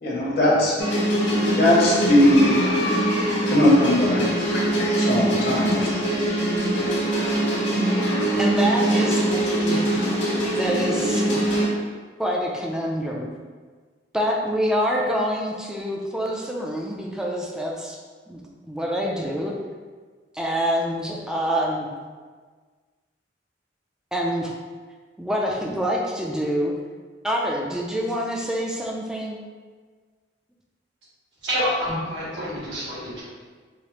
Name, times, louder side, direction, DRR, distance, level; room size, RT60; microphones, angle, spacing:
voice 1, 0.0-0.8 1.3-2.6 3.5-5.9, left 1 dB, 55° left, -5 dB, 0.9 m, -20 dB
sound 1, 0.8-11.7, right 1 dB, 80° left, 0.9 m, -23 dB
voice 2, 8.4-9.8 10.5-11.8 12.2-13.3 14.1-18.0 18.3-19.6 20.3-21.9 24.1-24.6 25.2-26.7 27.2-29.4, equal, 5° right, -2 dB, 0.4 m, -26 dB
voice 3, 31.4-33.2, equal, 80° right, -8 dB, 1.3 m, -27 dB
4.7 x 2.1 x 2.9 m, 1.5 s
head